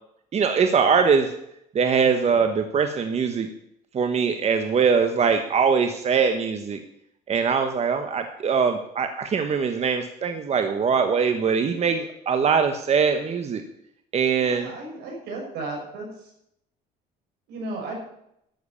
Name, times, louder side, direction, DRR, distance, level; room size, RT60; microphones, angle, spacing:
voice 1, 0.3-1.3 1.7-3.5 3.9-6.8 7.3-13.6 14.1-14.7, right 6 dB, 40° right, 7 dB, 1.2 m, -22 dB
voice 2, 14.3-16.3 17.5-17.9, right 2 dB, 85° right, 0 dB, 6.3 m, -34 dB
12.0 x 7.9 x 8.6 m, 0.77 s
cardioid pair, 110°, 17 cm